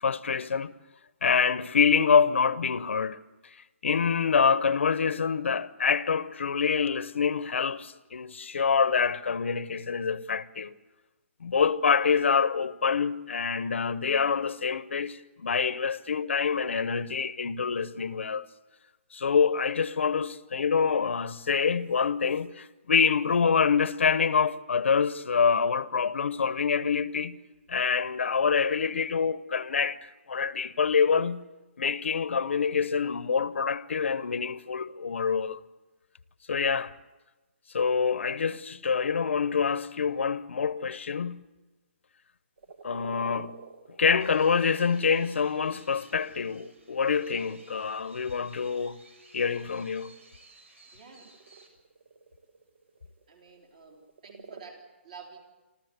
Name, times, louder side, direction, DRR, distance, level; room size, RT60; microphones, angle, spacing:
voice 1, 0.0-0.7 1.2-3.2 3.8-10.7 11.4-18.5 19.1-27.4 27.7-31.4 31.8-35.6 36.5-36.9 37.7-41.4 42.8-43.5 44.0-49.0 49.3-50.1, left 6 dB, 70° left, 0.9 m, -26 dB
sound 1, 42.6-45.9 46.4-47.6 49.6-54.6, right 4 dB, 60° right, 1.8 m, -49 dB
sound 2, 44.2-51.7, right 2 dB, 80° right, 6.1 m, -57 dB
voice 2, 50.9-51.3 53.3-55.4, right 5 dB, 35° right, 3.3 m, -50 dB
27.0 x 14.0 x 8.1 m
hypercardioid pair, 180°, 7 cm